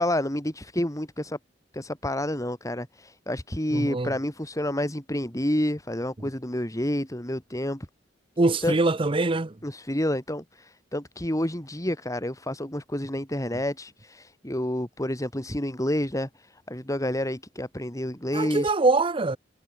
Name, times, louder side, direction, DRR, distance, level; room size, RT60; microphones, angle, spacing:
voice 1, 0.0-1.4 1.7-7.9 8.6-8.8 9.6-18.7, left 1 dB, 20° left, 3.0 m, -29 dB
voice 2, 3.7-4.1 8.4-9.5 18.3-19.4, right 2 dB, 30° right, 0.7 m, -23 dB
head